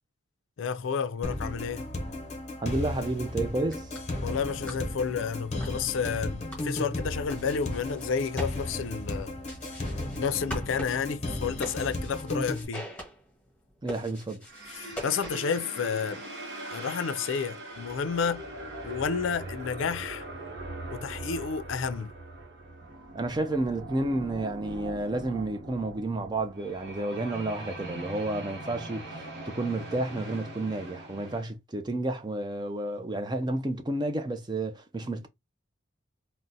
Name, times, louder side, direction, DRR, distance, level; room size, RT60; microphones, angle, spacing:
voice 1, 0.6-1.9 4.2-9.4 10.2-12.9 14.7-16.2 16.7-18.5 18.8-20.3 20.9-22.1, left 6 dB, 80° left, 0.4 m, -31 dB
sound 1, 1.2-12.6, left 1 dB, 35° left, 0.6 m, -35 dB
voice 2, 2.6-3.9 13.8-14.5 23.1-35.3, right 2 dB, 20° right, 0.4 m, -31 dB
sound 2, 3.7-15.6, equal, 5° left, 1.2 m, -45 dB
sound 3, 14.5-31.4, right 2 dB, 60° right, 0.8 m, -41 dB
3.8 x 2.1 x 2.6 m
head